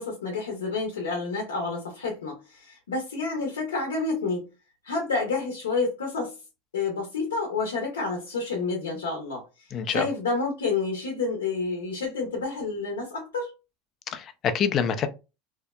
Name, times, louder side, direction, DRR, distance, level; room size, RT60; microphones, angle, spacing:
voice 1, 0.0-4.4 4.8-6.3 6.7-9.4 9.9-13.5, left 4 dB, 85° left, 0.7 m, -29 dB
voice 2, 9.7-10.1 14.1-15.1, left 7 dB, 40° left, 0.4 m, -26 dB
2.7 x 2.0 x 2.3 m
hypercardioid pair, 90°, 0 cm